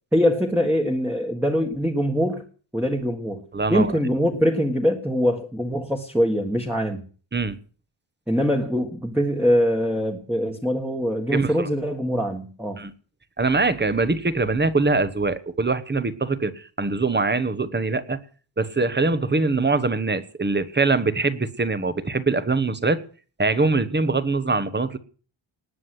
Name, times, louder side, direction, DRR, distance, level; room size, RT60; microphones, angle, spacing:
voice 1, 0.1-2.4 2.7-3.4 3.7-7.0 8.3-12.8, equal, 5° right, 1.6 m, -23 dB
voice 2, 3.5-3.9 7.3-7.5 11.3-11.7 12.8-12.9 13.4-18.2 18.6-23.0 23.4-25.0, right 3 dB, 20° right, 1.2 m, -23 dB
19.5 x 7.5 x 8.1 m
wide cardioid pair, 180°, 48 cm